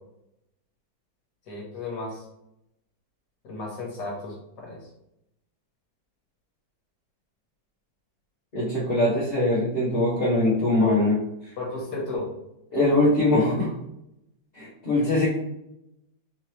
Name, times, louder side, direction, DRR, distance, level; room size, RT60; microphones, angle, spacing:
voice 1, 1.5-2.2 3.4-4.8 11.6-12.3, left 2 dB, 65° left, -3 dB, 1.7 m, -34 dB
voice 2, 8.5-11.2 12.7-13.7 14.5-15.3, left 2 dB, 35° left, -11 dB, 1.2 m, -22 dB
4.4 x 2.9 x 3.1 m, 0.84 s
omnidirectional pair, 2.0 m